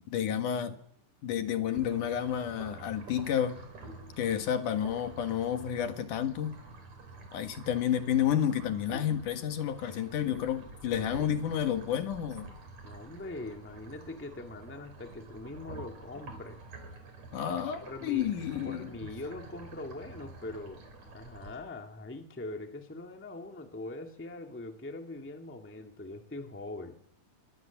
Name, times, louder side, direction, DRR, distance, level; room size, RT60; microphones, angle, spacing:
voice 1, 0.1-0.8 1.2-3.6 4.2-6.6 7.3-12.5 17.3-18.9, left 9 dB, 75° left, 3.1 m, -30 dB
sound 1, 1.7-21.6, right 3 dB, 70° right, 5.5 m, -48 dB
voice 2, 12.8-16.6 17.8-18.3 18.6-20.8 21.1-27.0, left 2 dB, 5° left, 1.3 m, -42 dB
24.0 x 23.5 x 7.2 m
omnidirectional pair, 3.7 m